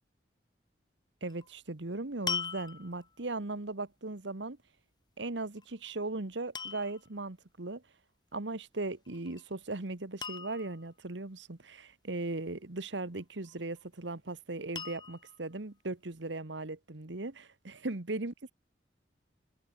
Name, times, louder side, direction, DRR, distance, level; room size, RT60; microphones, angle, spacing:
voice 1, 1.2-4.6 5.2-7.8 8.3-18.5, right 2 dB, 75° right, 1.5 m, -38 dB
sound 1, 1.3-1.5 2.3-3.2 5.6-5.9 6.5-7.1 9.0-9.4 9.7-9.8 10.2-10.9 13.2-13.8 14.8-15.4 16.1-16.2, left 5 dB, 25° left, 4.1 m, -39 dB
head